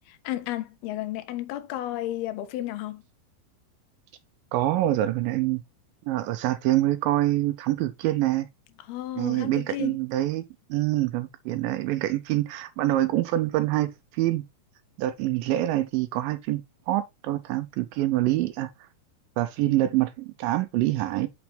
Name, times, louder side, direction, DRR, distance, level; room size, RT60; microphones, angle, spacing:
voice 1, 0.1-3.0 8.9-10.0, left 14 dB, 85° left, 2.8 m, -33 dB
voice 2, 4.5-5.6 6.1-8.5 9.2-10.4 10.7-14.4 15.0-16.6 16.9-18.7 19.4-21.3, right 15 dB, 80° right, 2.1 m, -25 dB
6.2 x 6.2 x 3.2 m
omnidirectional pair, 4.3 m